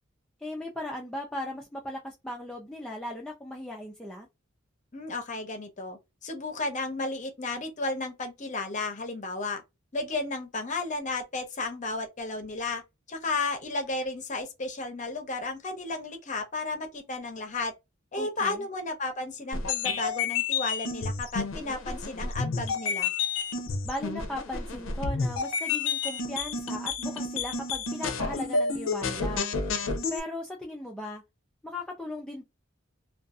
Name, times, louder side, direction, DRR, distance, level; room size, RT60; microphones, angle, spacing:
voice 1, 0.4-4.3 18.2-18.7 23.8-29.5 30.1-31.2 31.6-32.4, left 1 dB, 5° left, 0.4 m, -37 dB
voice 2, 4.9-9.6 9.9-12.8 13.1-17.7 18.1-23.1, left 3 dB, 40° left, 0.7 m, -33 dB
sound 1, 19.5-30.2, left 4 dB, 85° left, 0.5 m, -30 dB
2.5 x 2.3 x 2.3 m
head